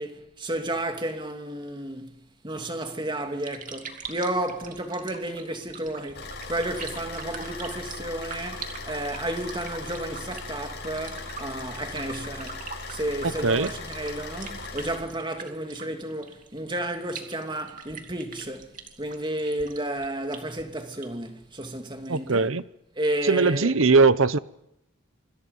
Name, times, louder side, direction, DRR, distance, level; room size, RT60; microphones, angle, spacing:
voice 1, 0.0-22.5 23.0-23.8, right 1 dB, 20° right, 2.8 m, -32 dB
sound 1, 3.4-22.4, right 6 dB, 40° right, 2.6 m, -44 dB
Car / Idling, 6.1-15.0, left 3 dB, 50° left, 6.6 m, -38 dB
voice 2, 22.1-22.6 23.3-24.4, right 4 dB, 65° right, 0.9 m, -20 dB
26.5 x 26.5 x 5.5 m
head